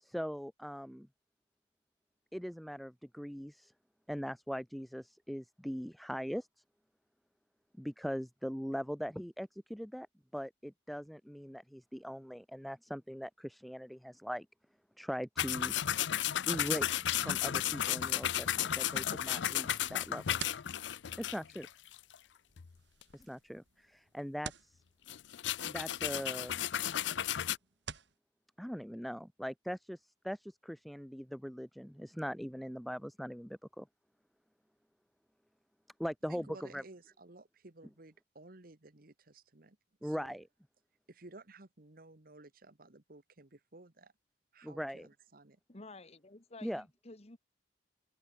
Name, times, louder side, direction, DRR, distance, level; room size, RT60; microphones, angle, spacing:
voice 1, 0.0-1.1 2.3-3.7 4.1-6.5 7.8-10.1 10.3-14.5 15.0-15.7 16.5-20.3 21.2-21.7 23.1-24.8 25.6-26.7 28.6-33.9 36.0-36.8 40.0-40.5 44.6-45.1 46.6-46.8, equal, ahead, 0.5 m, -41 dB
sound 1, 15.4-22.1 22.6-22.7 23.0-23.1 25.1-27.6, left 11 dB, 85° left, 0.5 m, -34 dB
sound 2, 19.8-28.2, right 7 dB, 85° right, 4.1 m, -51 dB
voice 2, 36.3-40.4 41.1-44.1 44.5-45.6, right 2 dB, 55° right, 1.7 m, -55 dB
voice 3, 45.7-47.4, left 2 dB, 35° left, 1.6 m, -52 dB
head